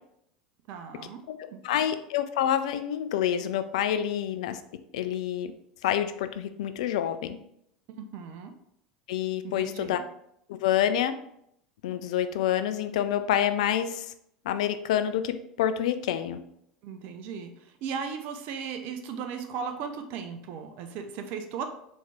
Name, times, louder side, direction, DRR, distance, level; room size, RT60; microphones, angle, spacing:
voice 1, 0.7-1.2 1.5-1.8 7.9-8.5 9.4-10.0 16.8-21.7, right 6 dB, 50° right, 6 dB, 0.5 m, -37 dB
voice 2, 1.3-4.6 4.9-5.5 5.8-7.4 9.1-10.0 10.5-11.1 11.8-14.1 14.5-16.4, left 10 dB, 65° left, 10 dB, 0.4 m, -27 dB
4.1 x 3.1 x 3.4 m, 0.74 s
figure-of-eight pair, 80°, 4 cm